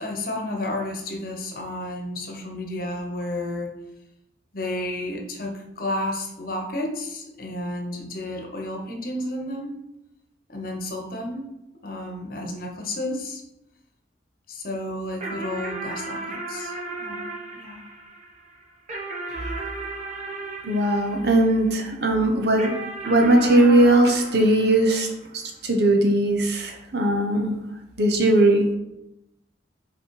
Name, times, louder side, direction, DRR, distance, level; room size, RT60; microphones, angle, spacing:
voice 1, 0.0-3.7 4.5-9.8 10.5-11.5 11.8-13.4 14.5-17.8, left 1 dB, 55° left, 1 dB, 1.2 m, -32 dB
sound 1, 15.2-21.9 22.6-25.4, right 2 dB, 40° right, 1.2 m, -35 dB
voice 2, 20.6-22.7 23.1-25.1 25.3-27.6 28.0-28.7, right 1 dB, 65° right, 2 dB, 1.1 m, -19 dB
5.5 x 4.4 x 4.7 m, 0.91 s
head